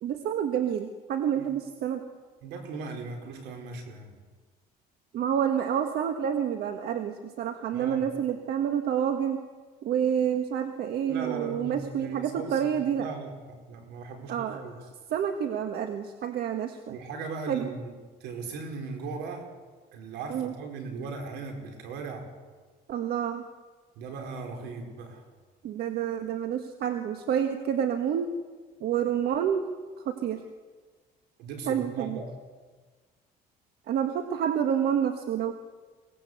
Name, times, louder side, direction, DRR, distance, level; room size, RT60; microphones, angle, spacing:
voice 1, 0.0-2.0 5.1-9.4 9.8-13.1 14.3-17.0 17.5-17.7 20.3-20.5 22.9-23.4 25.6-28.3 28.8-29.8 30.0-30.4 31.7-32.2 33.9-35.5, right 9 dB, 70° right, 6 dB, 1.6 m, -28 dB
voice 2, 2.4-4.2 7.7-8.1 11.1-14.7 16.9-17.9 18.2-19.5 19.9-22.3 23.9-25.2 31.4-32.3, right 4 dB, 90° right, 4 dB, 4.8 m, -38 dB
23.5 x 18.5 x 8.1 m, 1.4 s
cardioid pair, 110°, 17 cm